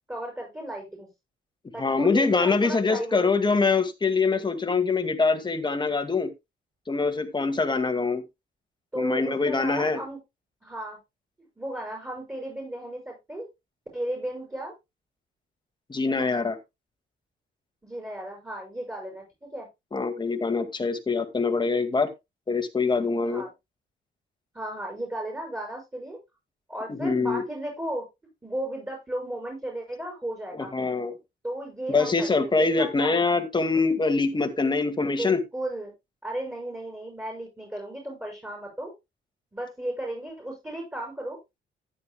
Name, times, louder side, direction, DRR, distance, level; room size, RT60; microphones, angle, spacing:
voice 1, 0.1-1.1 1.7-3.2 3.5-3.6 8.9-10.2 10.6-11.0 11.6-13.5 13.9-14.7 17.8-19.7 23.2-23.5 24.5-26.2 26.7-28.0 28.4-30.7 31.4-33.2 35.2-35.9 36.2-38.9 39.5-41.4, right 1 dB, 15° right, 0 dB, 6.6 m, -35 dB
voice 2, 1.8-6.3 6.9-8.2 9.0-10.0 15.9-16.6 19.9-22.1 22.5-23.4 27.0-27.4 30.5-31.1 31.9-35.4, left 4 dB, 25° left, 8 dB, 2.1 m, -24 dB
13.5 x 9.7 x 2.3 m, 0.22 s
cardioid pair, 90°, 20 cm